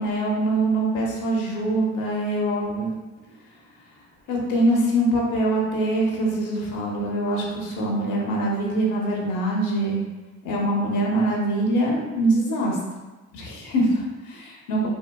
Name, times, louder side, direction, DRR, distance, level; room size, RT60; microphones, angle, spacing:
voice 1, 0.0-2.9 4.3-10.0 10.4-12.8 13.3-14.9, right 1 dB, 85° left, -2 dB, 0.8 m, -23 dB
4.0 x 2.2 x 2.2 m, 1.2 s
cardioid pair, 90°, 30 cm